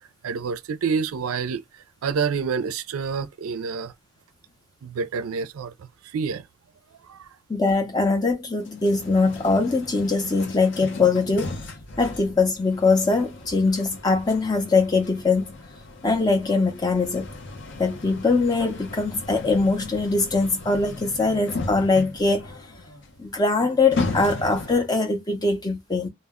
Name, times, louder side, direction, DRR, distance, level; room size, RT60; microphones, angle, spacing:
voice 1, 0.2-3.9 4.8-6.4 7.1-7.3, right 5 dB, 80° right, 0.4 m, -28 dB
voice 2, 7.5-11.5 12.0-15.5 16.0-17.3 17.8-22.5 23.2-26.1, left 3 dB, 20° left, 0.5 m, -22 dB
sound 1, 8.6-25.0, left 3 dB, 55° left, 0.6 m, -36 dB
2.1 x 2.0 x 3.5 m
head